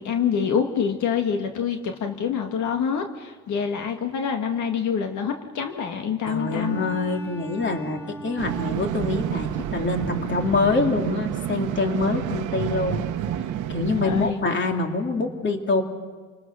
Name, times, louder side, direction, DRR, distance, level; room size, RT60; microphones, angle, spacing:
voice 1, 0.0-6.8 14.0-14.4, left 7 dB, 75° left, 4 dB, 1.8 m, -26 dB
Bowed string instrument, 6.2-11.0, equal, 10° left, 5.3 m, -40 dB
voice 2, 6.3-13.0 13.7-15.8, left 3 dB, 40° left, 3 dB, 3.0 m, -25 dB
sound 1, 8.4-14.3, right 10 dB, 85° right, 1.0 m, -29 dB
29.5 x 19.5 x 6.3 m, 1.5 s
cardioid pair, 90°, 30 cm